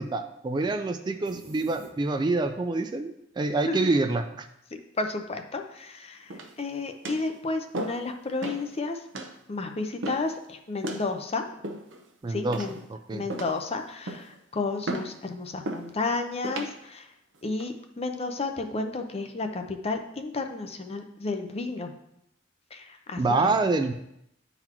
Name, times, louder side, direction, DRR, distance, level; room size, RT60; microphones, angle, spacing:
voice 1, 0.0-4.5 12.2-12.6 13.1-13.2 23.2-23.9, right 3 dB, 25° right, 7 dB, 0.3 m, -26 dB
sound 1, 1.2-2.5, right 1 dB, 55° right, 1.1 m, -46 dB
voice 2, 5.0-6.3 6.6-9.0 9.5-11.4 12.3-12.8 13.1-17.1 17.4-21.9 22.7-23.5, left 3 dB, 35° left, 6 dB, 0.6 m, -32 dB
sound 2, 6.3-6.7 7.0-7.3 7.7-8.1 8.4-8.7 9.1-9.3 10.0-10.3 10.8-11.1 11.6-12.1 12.5-12.9 13.3-13.6 14.1-14.4 14.9-15.1 15.6-15.9 16.4-16.7 17.3-17.7, right 1 dB, 75° right, 0.7 m, -35 dB
10.0 x 4.0 x 2.9 m, 0.79 s
head